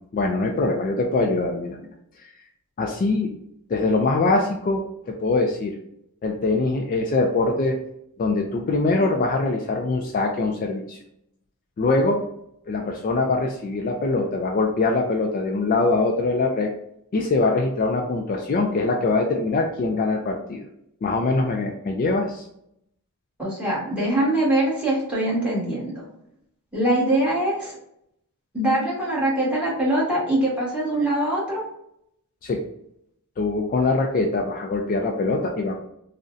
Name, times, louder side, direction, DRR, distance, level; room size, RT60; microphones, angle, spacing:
voice 1, 0.1-1.9 2.8-3.3 3.7-5.8 6.2-7.8 8.2-11.0 11.8-12.2 12.7-16.7 17.1-20.7 21.0-22.4 32.4-32.6 33.4-35.8, left 3 dB, 40° left, 1 dB, 0.3 m, -23 dB
voice 2, 23.4-25.9 26.7-27.7 28.5-31.6, right 1 dB, 5° right, -7 dB, 1.3 m, -23 dB
3.7 x 2.1 x 2.5 m, 0.75 s
head